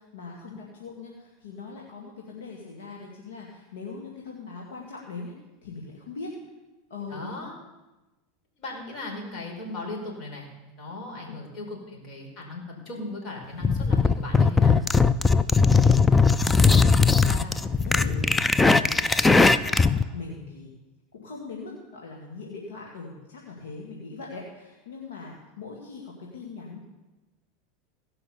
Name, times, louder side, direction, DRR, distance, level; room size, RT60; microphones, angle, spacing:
voice 1, 0.0-5.3 5.6-6.3 6.9-7.3 11.2-11.4 15.6-15.9 16.3-19.3 19.6-20.7 21.1-26.8, left 4 dB, 80° left, -2 dB, 2.2 m, -41 dB
voice 2, 7.1-7.5 8.6-10.4 10.8-14.8, left 2 dB, 50° left, 0 dB, 4.8 m, -37 dB
sound 1, 13.6-20.0, left 4 dB, 15° left, 0.5 m, -19 dB
17.0 x 5.7 x 7.0 m, 1.1 s
hypercardioid pair, 100°, 0 cm